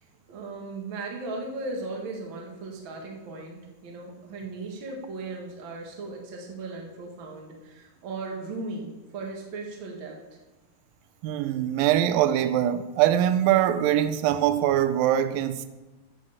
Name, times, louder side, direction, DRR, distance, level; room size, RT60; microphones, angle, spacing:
voice 1, 0.3-10.2, right 3 dB, 50° right, 1.5 m, -37 dB
voice 2, 11.2-15.7, right 11 dB, 85° right, 2.0 m, -23 dB
8.5 x 6.5 x 7.1 m
omnidirectional pair, 4.6 m